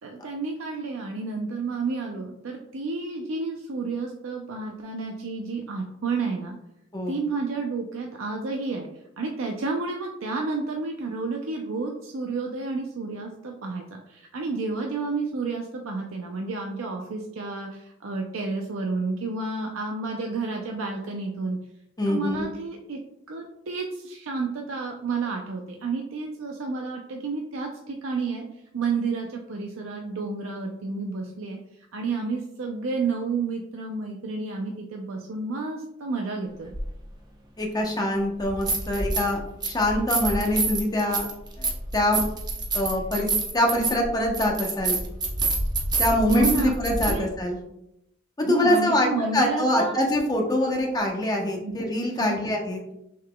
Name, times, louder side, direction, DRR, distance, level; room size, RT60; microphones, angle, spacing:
voice 1, 0.0-6.6 7.1-8.9 9.2-21.6 22.0-23.0 23.3-31.6 31.9-36.7 46.3-46.7 47.1-47.3 48.4-50.0 51.6-51.7 52.2-52.5, right 3 dB, 90° right, 2 dB, 0.5 m, -30 dB
voice 2, 22.0-22.5 37.6-41.3 41.6-42.2 42.7-43.3 43.5-45.0 46.0-47.6 48.5-52.8, left 1 dB, 20° left, 0 dB, 0.8 m, -24 dB
sound 1, 36.7-36.8 38.4-39.3 39.6-47.1, right 3 dB, 20° right, 0.7 m, -27 dB
6.2 x 3.9 x 2.2 m, 0.82 s
head